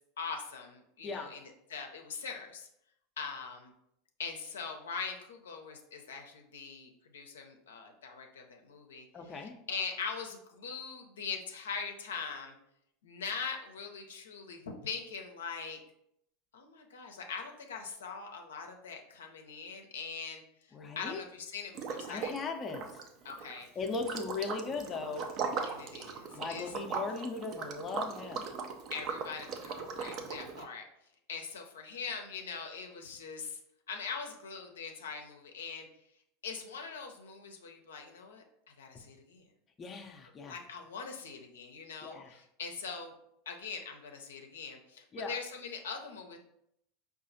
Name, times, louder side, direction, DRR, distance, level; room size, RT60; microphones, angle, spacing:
voice 1, 0.2-2.7 3.2-3.7 4.2-12.5 13.0-15.8 16.5-20.4 21.0-22.4 23.2-23.7 25.7-26.7 28.9-30.8 31.3-33.6 33.9-35.9 36.4-38.4 38.8-39.4 40.4-43.1 43.5-46.4, left 5 dB, 85° left, 3 dB, 0.5 m, -42 dB
voice 2, 9.1-9.6 20.7-21.2 22.1-23.0 23.8-25.2 26.4-28.5 39.8-40.6 42.0-42.4 45.1-45.4, left 4 dB, 30° left, 4 dB, 0.5 m, -38 dB
Liquid, 21.7-22.4 22.7-30.6, right 5 dB, 50° right, 0.5 m, -39 dB
4.7 x 2.4 x 2.6 m, 0.76 s
hypercardioid pair, 95°, 0 cm